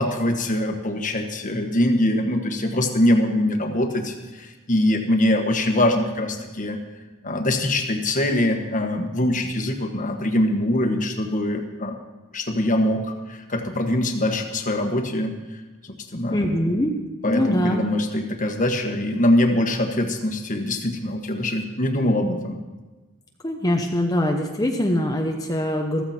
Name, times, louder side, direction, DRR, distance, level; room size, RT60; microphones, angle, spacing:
voice 1, 0.0-6.8 7.2-12.0 12.3-15.3 15.8-16.4 17.2-22.6, left 1 dB, 35° left, 4 dB, 1.4 m, -23 dB
voice 2, 16.3-17.0 17.3-17.8 23.4-26.0, left 1 dB, 15° left, 2 dB, 0.9 m, -23 dB
14.5 x 14.0 x 4.4 m, 1.2 s
head